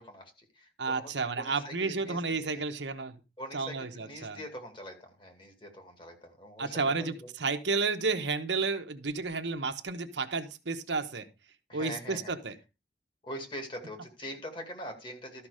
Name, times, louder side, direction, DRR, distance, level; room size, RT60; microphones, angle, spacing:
voice 1, 0.0-1.1 1.4-2.5 3.4-7.3 11.7-12.3 13.2-15.5, equal, 30° left, 5 dB, 2.4 m, -43 dB
voice 2, 0.8-3.2 3.5-4.4 6.6-11.3 11.7-12.5, right 4 dB, 80° right, 7 dB, 1.2 m, -32 dB
13.0 x 5.9 x 5.0 m, 0.29 s
head